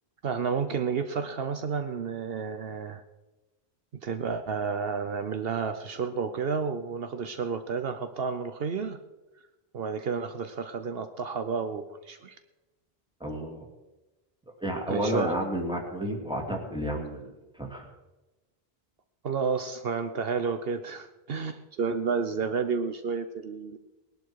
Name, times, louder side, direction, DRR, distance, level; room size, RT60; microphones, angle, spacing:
voice 1, 0.2-3.0 4.0-9.0 9.7-12.4 14.9-15.4 19.2-23.8, right 5 dB, 70° right, 8 dB, 1.0 m, -31 dB
voice 2, 13.2-13.6 14.6-17.3 17.6-17.9, equal, 5° right, 1 dB, 2.6 m, -31 dB
19.5 x 12.0 x 4.7 m, 1.1 s
omnidirectional pair, 1.0 m